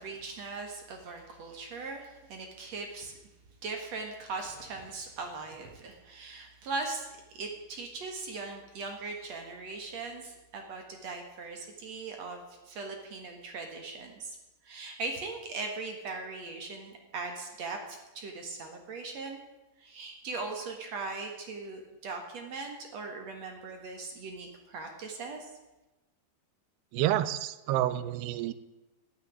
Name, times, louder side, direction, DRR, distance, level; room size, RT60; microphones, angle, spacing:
voice 1, 0.0-3.1 3.6-14.4 14.6-19.4 19.8-25.5, right 3 dB, 55° right, 3 dB, 2.2 m, -39 dB
voice 2, 26.9-28.5, right 13 dB, 80° right, 14 dB, 2.7 m, -29 dB
12.5 x 9.5 x 9.5 m, 1.0 s
omnidirectional pair, 4.8 m